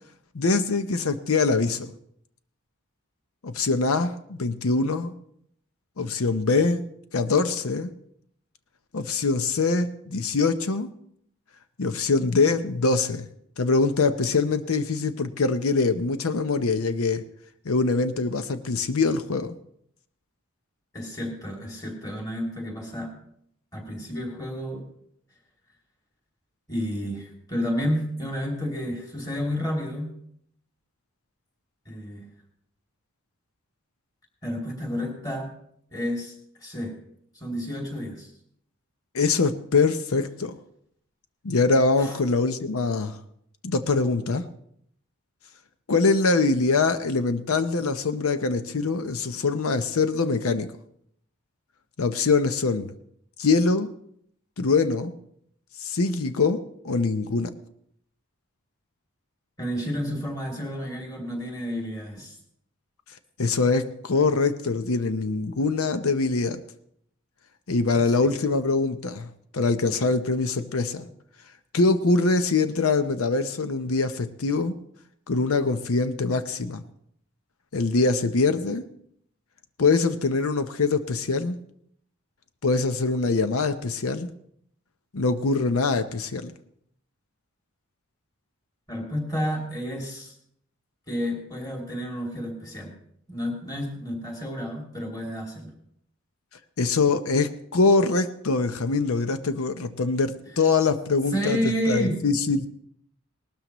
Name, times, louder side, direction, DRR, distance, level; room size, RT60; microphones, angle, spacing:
voice 1, 0.3-1.9 3.4-5.1 6.0-6.8 7.1-7.9 8.9-10.9 11.8-13.3 13.6-17.2 17.6-19.6 39.1-40.6 41.4-43.2 43.6-44.5 45.9-50.7 52.0-52.9 53.4-53.9 54.6-55.1 55.8-57.5 63.4-66.6 67.7-71.1 71.7-74.8 75.3-76.8 77.7-78.8 79.8-81.6 82.6-84.3 85.1-86.5 96.8-102.7, left 3 dB, 85° left, 10 dB, 0.7 m, -23 dB
voice 2, 20.9-23.1 23.7-24.9 26.7-30.1 31.9-32.3 34.4-35.5 35.9-37.0 37.3-38.3 42.0-42.2 59.6-62.4 67.9-68.3 88.9-90.3 91.1-92.9 93.3-95.7 101.3-102.2, equal, 15° left, 0 dB, 2.7 m, -30 dB
19.0 x 12.5 x 3.0 m, 0.70 s
head